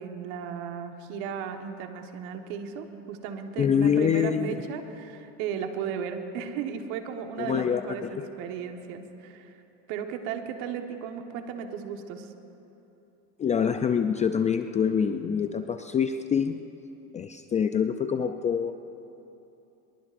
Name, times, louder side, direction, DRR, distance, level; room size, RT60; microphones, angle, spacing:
voice 1, 0.0-9.5 9.9-12.3, right 7 dB, 70° right, 5 dB, 1.5 m, -35 dB
voice 2, 3.6-4.6 7.4-8.3 13.4-16.6 17.1-18.7, left 7 dB, 20° left, 8 dB, 0.4 m, -25 dB
24.0 x 22.0 x 2.6 m, 2.9 s
supercardioid pair, 120°, 36 cm